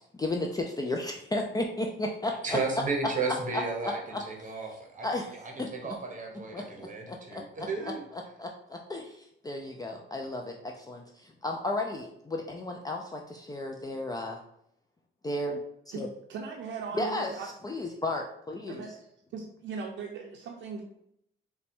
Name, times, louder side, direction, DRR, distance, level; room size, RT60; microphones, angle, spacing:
voice 1, 0.2-2.6 3.8-4.2 5.0-5.3 5.6-5.9 6.5-8.5 8.9-9.1 9.4-10.5 10.9-11.0 11.4-14.4 15.2-15.6 15.9-16.1 16.9-18.8, left 2 dB, 20° left, 2 dB, 0.4 m, -33 dB
voice 2, 2.4-4.0 4.2-5.1 5.3-8.0, right 4 dB, 40° right, 1 dB, 0.9 m, -33 dB
voice 3, 15.9-17.5 17.7-18.0 18.7-19.1 19.3-20.8, right 5 dB, 65° right, 1 dB, 0.5 m, -39 dB
4.1 x 2.3 x 4.2 m, 0.75 s
cardioid pair, 90°, 20 cm